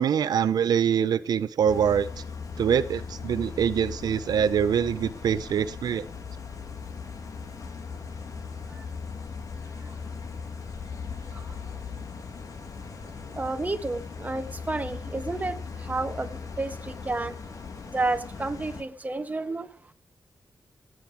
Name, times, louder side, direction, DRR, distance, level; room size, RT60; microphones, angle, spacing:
voice 1, 0.0-2.1 2.6-6.1, right 8 dB, 85° right, 0.5 m, -24 dB
sound 1, 1.7-18.8, left 5 dB, 60° left, 1.9 m, -38 dB
voice 2, 13.4-15.6 15.9-16.3 16.6-17.3 17.9-19.7, right 2 dB, 25° right, 1.2 m, -30 dB
16.5 x 8.7 x 4.6 m
cardioid pair, 95°, 7 cm